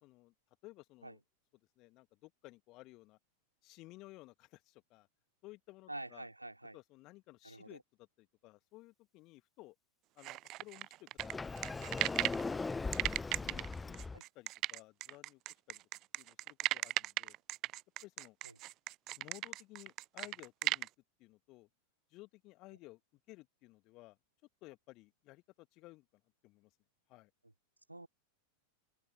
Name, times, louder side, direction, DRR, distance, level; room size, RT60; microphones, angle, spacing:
voice 1, 0.0-0.3 0.6-1.2 1.8-3.2 3.6-5.1 5.4-6.3 6.7-9.8 10.2-11.1 13.4-15.4 15.7-15.8 16.2-17.4 18.0-18.4 19.2-20.9 21.2-21.7 22.1-24.2 24.6-26.1 26.4-26.7 27.1-27.3, left 20 dB, 40° left, 1.9 m, -57 dB
voice 2, 5.9-6.8 7.4-7.8 14.1-14.2 18.4-18.5 27.9-28.1, right 2 dB, 85° right, 2.4 m, -47 dB
sound 1, 10.2-12.4 12.9-20.9, right 17 dB, 35° right, 0.4 m, -36 dB
Sliding door, 11.2-14.2, left 3 dB, 10° left, 0.6 m, -39 dB
open air
figure-of-eight pair, 90°, 0 cm